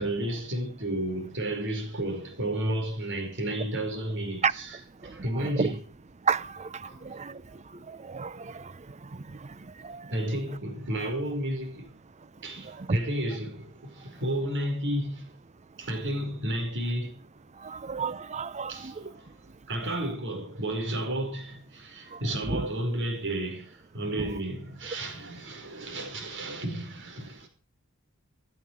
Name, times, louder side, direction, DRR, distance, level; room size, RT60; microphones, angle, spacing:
voice 1, 0.0-5.8 6.9-7.0 10.1-11.9 12.4-15.3 15.8-17.2 18.7-19.3 19.7-27.5, right 1 dB, 55° right, 5.0 m, -32 dB
voice 2, 5.3-5.7 6.3-7.4 7.9-8.7 9.8-10.1 12.8-13.0 17.6-18.9 22.1-22.2 22.5-22.7 24.2-24.3, right 5 dB, 30° right, 0.6 m, -31 dB
16.5 x 12.5 x 4.8 m
head